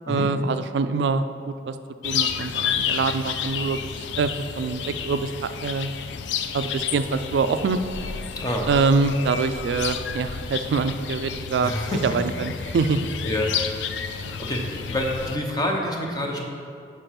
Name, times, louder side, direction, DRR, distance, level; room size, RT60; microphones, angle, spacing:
voice 1, 0.1-1.8 2.0-3.8 4.1-5.9 6.5-7.8 8.7-11.7 12.0-13.1 14.2-14.3, right 4 dB, 75° right, 10 dB, 0.3 m, -24 dB
sound 1, 2.0-15.4, left 7 dB, 80° left, 0.3 m, -31 dB
voice 2, 8.4-8.7 11.6-12.0 13.2-13.5 14.1-16.4, left 1 dB, 20° left, 0 dB, 0.8 m, -27 dB
5.2 x 4.8 x 5.8 m, 2.4 s
head